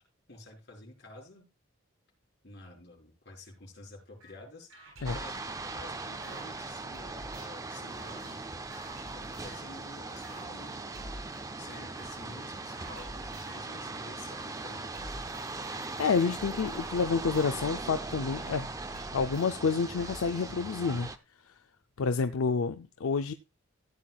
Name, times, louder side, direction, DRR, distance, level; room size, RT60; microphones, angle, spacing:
voice 1, 0.3-1.5 2.4-4.7 5.0-5.3 5.7-8.4 9.0-10.9 11.6-14.9, left 2 dB, 50° left, 4.6 m, -50 dB
sound 1, 4.2-4.3 4.7-6.4 6.9-9.8 10.2-10.4 10.9-11.4 11.7-12.3 12.7-13.7 14.2-14.4 14.9-18.4 18.9-20.2, right 1 dB, 90° right, 7.5 m, -49 dB
sound 2, 5.0-21.2, right 3 dB, 15° right, 0.5 m, -40 dB
voice 2, 16.0-18.7 19.1-21.1 22.0-23.3, left 5 dB, 80° left, 0.5 m, -29 dB
15.0 x 9.1 x 2.3 m
head